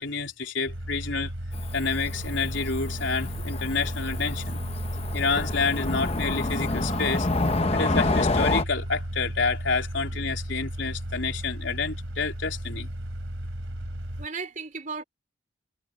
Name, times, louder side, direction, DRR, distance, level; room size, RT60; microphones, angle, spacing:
voice 1, 0.0-1.3 1.7-4.6 5.1-7.3 7.7-12.9, left 4 dB, 70° left, 3.8 m, -29 dB
sound 1, 0.7-14.3, equal, 85° right, 3.8 m, -34 dB
Cricket / Motor vehicle (road), 1.5-8.6, left 2 dB, 30° left, 0.9 m, -28 dB
voice 2, 14.2-15.0, right 4 dB, 40° right, 3.7 m, -36 dB
head